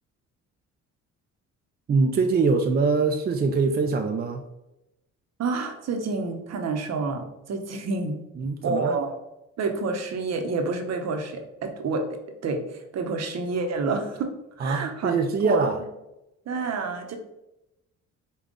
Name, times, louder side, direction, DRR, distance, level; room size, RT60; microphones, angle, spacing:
voice 1, 1.9-4.4 8.4-9.0 14.6-15.8, right 4 dB, 35° right, 4 dB, 0.4 m, -23 dB
voice 2, 5.4-8.2 8.6-9.2 9.6-15.1 15.4-15.6 16.5-17.2, right 3 dB, 60° right, 5 dB, 0.8 m, -29 dB
5.3 x 2.3 x 3.7 m, 0.91 s
cardioid pair, 90°, 30 cm